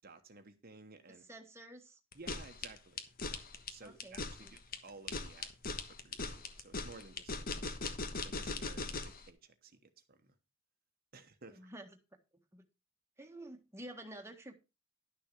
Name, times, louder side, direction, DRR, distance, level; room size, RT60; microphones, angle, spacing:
voice 1, 0.0-1.2 2.1-7.8 8.2-10.3 11.1-11.6, right 3 dB, 50° right, 1.2 m, -56 dB
voice 2, 1.3-2.0 3.8-4.5 11.5-11.9 12.5-12.6 13.2-14.5, right 1 dB, 15° right, 1.5 m, -50 dB
sound 1, 2.1-9.2, left 3 dB, 45° left, 1.3 m, -40 dB
11.0 x 6.7 x 4.7 m
head